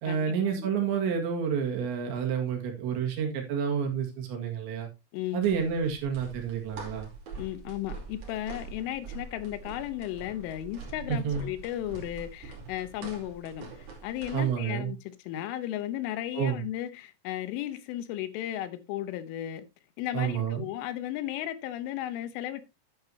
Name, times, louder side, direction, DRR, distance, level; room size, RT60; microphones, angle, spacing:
voice 1, 0.0-4.9 5.3-7.1 11.1-11.5 14.3-14.9 16.3-16.6 20.1-20.6, right 7 dB, 70° right, 4.0 m, -29 dB
voice 2, 5.1-5.5 7.4-19.7 20.0-22.6, left 13 dB, 85° left, 3.5 m, -35 dB
sound 1, 5.4-14.5, right 4 dB, 45° right, 3.6 m, -44 dB
10.5 x 9.0 x 2.8 m
omnidirectional pair, 5.5 m